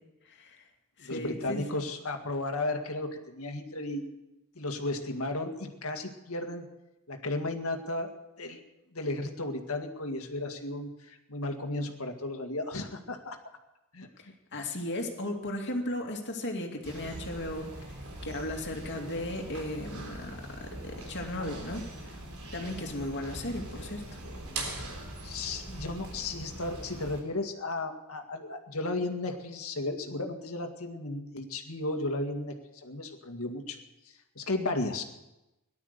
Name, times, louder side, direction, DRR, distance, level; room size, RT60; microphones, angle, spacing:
voice 1, 0.3-0.6 1.0-1.8 14.5-22.2 22.5-24.2, left 1 dB, 55° left, 2 dB, 2.5 m, -36 dB
voice 2, 1.0-4.1 4.6-6.7 7.1-8.1 8.4-8.6 8.9-13.4 13.9-14.1 25.2-33.8 34.4-35.0, left 2 dB, 80° left, 5 dB, 2.0 m, -34 dB
sound 1, 16.8-27.2, right 1 dB, 85° right, 3.8 m, -41 dB
18.0 x 12.0 x 6.7 m, 0.97 s
head